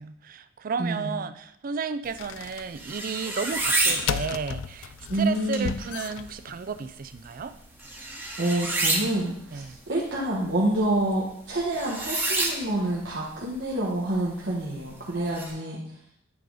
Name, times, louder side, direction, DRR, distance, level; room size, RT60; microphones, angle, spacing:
voice 1, 0.0-7.5 9.5-9.8 15.1-16.0, right 5 dB, 45° right, 12 dB, 0.4 m, -33 dB
voice 2, 0.8-1.1 5.1-5.7 8.4-15.8, right 1 dB, 65° right, -6 dB, 1.4 m, -27 dB
sound 1, 2.0-15.5, right 2 dB, 10° right, 1.0 m, -32 dB
sound 2, 2.2-2.6 3.7-6.8, left 8 dB, 85° left, 0.3 m, -34 dB
9.4 x 3.9 x 4.8 m, 0.74 s
head